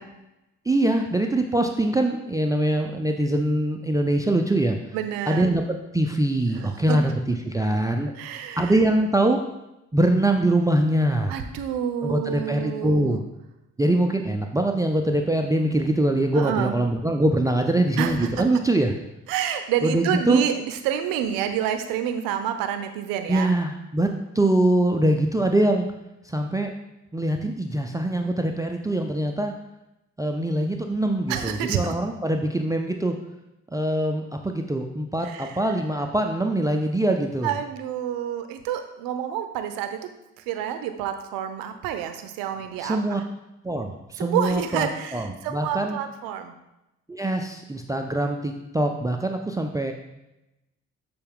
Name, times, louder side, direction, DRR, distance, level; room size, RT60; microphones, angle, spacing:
voice 1, 0.7-4.8 5.3-5.6 5.9-8.1 8.6-9.4 9.9-11.4 12.0-13.2 13.8-18.9 19.8-20.4 23.3-25.9 26.3-26.7 27.1-29.5 30.2-33.1 33.7-37.5 42.8-43.2 43.6-46.0 47.1-49.9, right 1 dB, 10° right, 4 dB, 0.4 m, -23 dB
voice 2, 4.9-5.5 6.5-7.4 8.1-8.8 11.3-13.2 16.3-16.8 18.0-18.4 19.3-23.5 31.3-31.9 35.2-35.6 37.4-40.0 40.4-43.2 44.2-46.5, right 9 dB, 70° right, 8 dB, 0.6 m, -28 dB
6.4 x 2.3 x 3.6 m, 0.92 s
hypercardioid pair, 50°, 36 cm